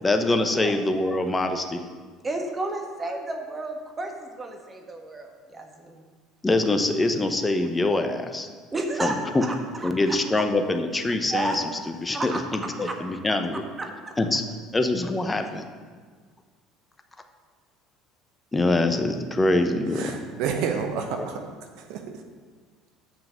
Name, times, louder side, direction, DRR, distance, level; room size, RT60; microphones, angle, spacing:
voice 1, 0.0-1.8 6.4-8.5 9.0-9.4 9.8-11.6 12.0-13.6 14.2-14.4 14.7-15.6 18.5-20.1, left 2 dB, 20° left, 6 dB, 0.9 m, -24 dB
voice 2, 2.2-6.0 8.7-9.9 11.3-11.7 12.1-12.4 12.8-12.9 13.8-13.9, right 2 dB, 25° right, 3 dB, 1.4 m, -31 dB
voice 3, 19.9-21.5 21.7-22.2, right 6 dB, 60° right, 5 dB, 0.9 m, -30 dB
7.1 x 5.8 x 6.6 m, 1.5 s
hypercardioid pair, 65°, 0 cm